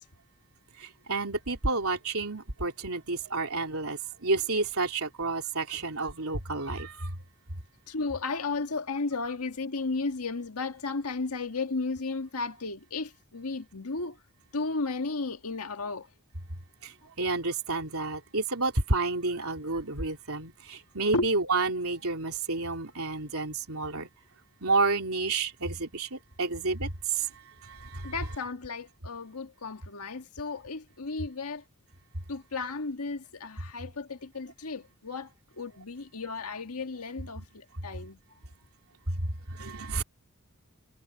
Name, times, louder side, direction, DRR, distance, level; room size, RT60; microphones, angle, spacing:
voice 1, 0.8-7.1 16.8-24.1 24.6-27.3 27.6-28.1 39.1-40.0, right 3 dB, 70° right, 3.5 m, -30 dB
voice 2, 7.9-14.2 14.5-16.1 21.1-21.3 28.0-31.6 32.3-35.3 35.6-38.2, left 3 dB, 80° left, 1.6 m, -34 dB
head